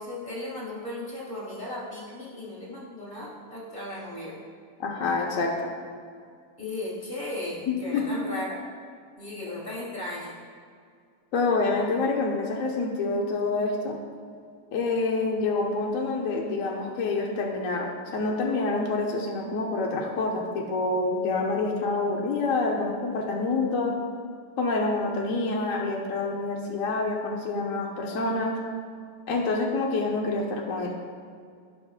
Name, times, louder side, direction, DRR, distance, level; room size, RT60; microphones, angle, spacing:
voice 1, 0.0-4.4 6.6-8.6 9.2-10.3, left 1 dB, 30° left, -6 dB, 2.3 m, -36 dB
voice 2, 4.8-5.7 7.7-8.2 11.3-14.0 14.7-24.0 24.6-28.6 29.3-30.9, left 3 dB, 50° left, -1 dB, 1.1 m, -27 dB
16.5 x 6.0 x 2.4 m, 2.2 s
omnidirectional pair, 2.0 m